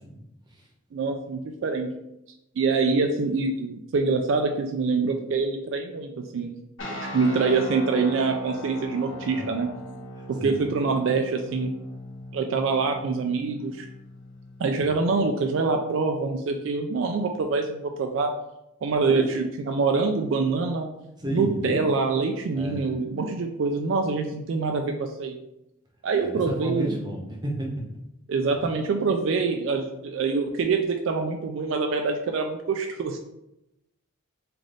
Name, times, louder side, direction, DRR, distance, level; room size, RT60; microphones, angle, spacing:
voice 1, 0.9-1.9 2.6-6.5 6.9-9.7 10.3-11.7 12.3-13.9 14.6-18.3 18.8-20.9 21.3-25.4 26.0-26.9 28.3-33.2, right 4 dB, 60° right, 4 dB, 0.3 m, -25 dB
sound 1, 6.8-15.7, left 1 dB, 65° left, 0.6 m, -40 dB
voice 2, 19.1-19.5 21.2-21.8 22.5-22.9 26.2-27.7, right 1 dB, 20° right, -1 dB, 0.7 m, -31 dB
3.3 x 2.5 x 3.9 m, 0.86 s
head